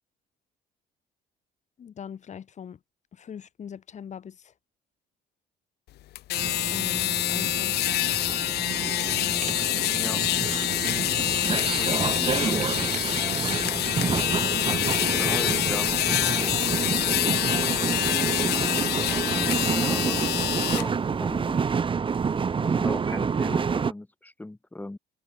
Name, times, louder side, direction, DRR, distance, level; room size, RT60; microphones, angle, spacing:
voice 1, 1.8-2.8 3.1-4.5 6.7-8.1, left 8 dB, 45° left, 5.0 m, -41 dB
sound 1, 6.2-20.9, left 16 dB, 75° left, 1.4 m, -26 dB
sound 2, 6.4-23.9, right 6 dB, 30° right, 1.7 m, -28 dB
sound 3, 9.4-17.4, right 8 dB, 45° right, 6.2 m, -47 dB
voice 2, 9.9-10.2 11.8-12.6 15.1-16.8 19.7-20.4 20.7-21.7 22.6-25.0, left 2 dB, 10° left, 3.2 m, -38 dB
cardioid pair, 110°, 17 cm